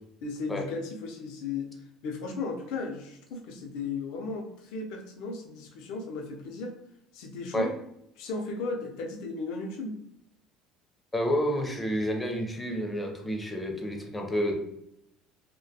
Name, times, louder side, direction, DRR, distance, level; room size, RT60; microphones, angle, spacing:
voice 1, 0.2-1.7 2.0-6.8 7.1-7.7 8.2-10.0, left 3 dB, 75° left, 3 dB, 0.4 m, -35 dB
voice 2, 11.1-14.5, equal, 10° left, 1 dB, 0.4 m, -29 dB
2.3 x 2.1 x 2.7 m, 0.78 s
cardioid pair, 140°, 0 cm